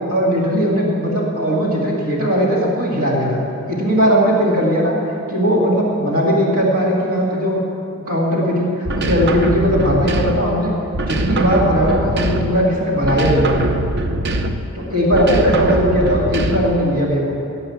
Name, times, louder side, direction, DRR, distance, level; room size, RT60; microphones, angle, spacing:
voice 1, 0.1-3.4 3.7-5.0 5.3-7.6 8.1-10.7 11.0-13.7 14.7-17.4, equal, 80° right, -3 dB, 2.3 m, -18 dB
sound 1, 8.9-10.6 10.9-12.7 13.0-14.7 15.1-16.8, right 1 dB, 50° right, 0.7 m, -22 dB
16.5 x 5.7 x 8.7 m, 2.8 s
head